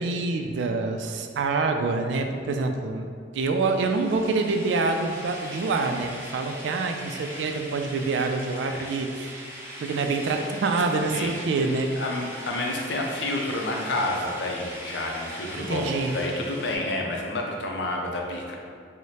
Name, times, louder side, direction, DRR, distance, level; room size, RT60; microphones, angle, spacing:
voice 1, 0.0-3.1 3.3-9.4 9.8-11.9 15.6-16.1, right 3 dB, 75° right, 5 dB, 0.3 m, -26 dB
sound 1, 3.6-16.8, equal, 15° right, 0.5 m, -40 dB
voice 2, 11.1-11.7 12.0-18.5, left 2 dB, 70° left, 0 dB, 0.5 m, -29 dB
4.7 x 2.1 x 2.8 m, 2.2 s
head